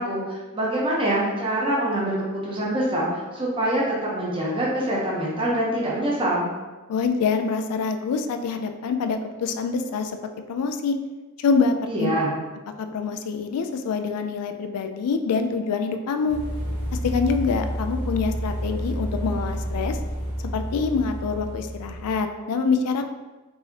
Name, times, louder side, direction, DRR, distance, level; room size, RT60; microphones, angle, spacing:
voice 1, 0.0-6.5 11.9-12.3, right 1 dB, 25° right, -6 dB, 0.8 m, -25 dB
voice 2, 6.9-10.1 10.5-11.0 11.4-12.1 12.9-16.4 17.0-20.0 20.5-23.0, left 5 dB, 85° left, 7 dB, 0.3 m, -25 dB
sound 1, 16.3-22.2, equal, 90° right, 1.4 m, -30 dB
4.6 x 2.8 x 2.8 m, 1.2 s
head